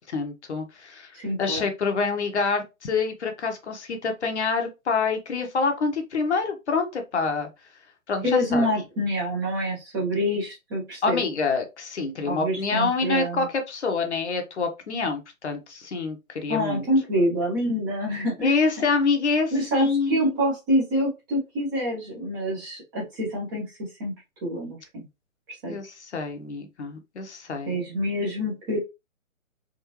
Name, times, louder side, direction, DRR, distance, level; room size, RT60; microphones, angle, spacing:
voice 1, 0.1-1.1 1.4-7.5 8.1-8.7 11.0-16.8 18.4-20.4 25.7-27.8, left 4 dB, 50° left, 1.0 m, -26 dB
voice 2, 1.1-1.6 8.2-11.2 12.3-13.5 16.5-18.6 19.5-23.7 24.0-24.1 24.4-25.0 25.6-25.8 27.7-28.8, equal, 15° right, 0.8 m, -26 dB
3.6 x 2.5 x 3.0 m
figure-of-eight pair, 140°, 42 cm